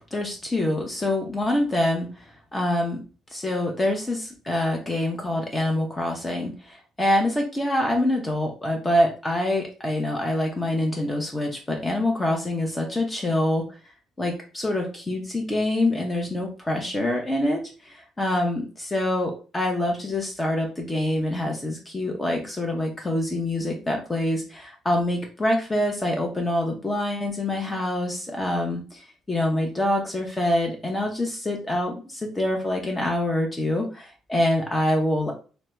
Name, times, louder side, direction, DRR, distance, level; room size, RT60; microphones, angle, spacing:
voice 1, 0.1-2.1 2.5-3.0 3.3-13.6 14.2-29.0 29.3-35.3, left 1 dB, 20° left, 1 dB, 0.7 m, -25 dB
3.1 x 2.1 x 3.0 m, 0.35 s
figure-of-eight pair, 45°, 0 cm